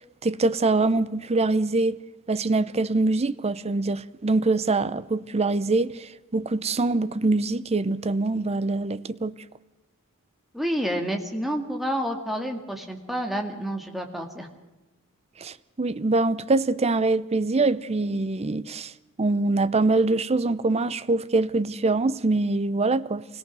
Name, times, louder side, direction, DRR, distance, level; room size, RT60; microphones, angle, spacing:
voice 1, 0.2-2.0 2.3-9.3 15.4-18.9 19.2-23.3, right 3 dB, 30° right, 0.6 m, -24 dB
voice 2, 10.5-14.5, equal, ahead, 2.0 m, -29 dB
24.5 x 17.5 x 6.2 m
head